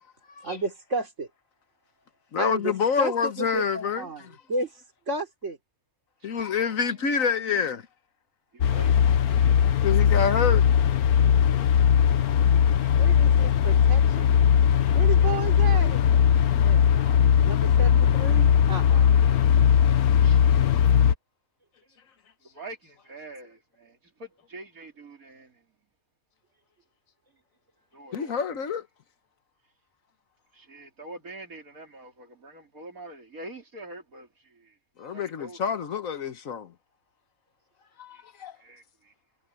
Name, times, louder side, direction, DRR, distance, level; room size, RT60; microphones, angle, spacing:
voice 1, 0.4-1.3 2.4-4.7 5.1-5.6 12.9-14.3 14.9-16.0 16.6-19.1, right 2 dB, 55° right, 3.8 m, -33 dB
voice 2, 2.3-4.4 6.2-7.8 9.8-10.7 28.1-28.9 35.0-36.7 38.0-38.5, left 6 dB, 65° left, 1.5 m, -27 dB
voice 3, 8.5-9.9 20.2-20.5 22.5-25.6 27.9-28.4 30.5-34.8 35.1-35.6 38.1-38.2 38.6-39.1, right 2 dB, 70° right, 3.9 m, -45 dB
sound 1, 8.6-21.1, left 8 dB, 85° left, 1.4 m, -19 dB
omnidirectional pair, 1.5 m